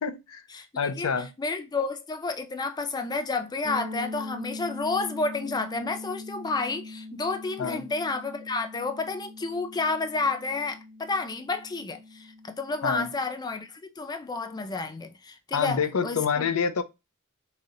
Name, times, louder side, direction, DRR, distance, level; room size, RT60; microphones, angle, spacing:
voice 1, 0.0-0.4 0.8-1.3 7.6-7.9 12.8-13.1 15.5-16.8, left 6 dB, 80° left, 0.6 m, -27 dB
voice 2, 0.5-1.1 1.4-16.2, left 3 dB, 20° left, 0.4 m, -30 dB
sound 1, 3.6-13.4, left 2 dB, 35° right, 1.0 m, -42 dB
4.8 x 2.8 x 2.5 m
head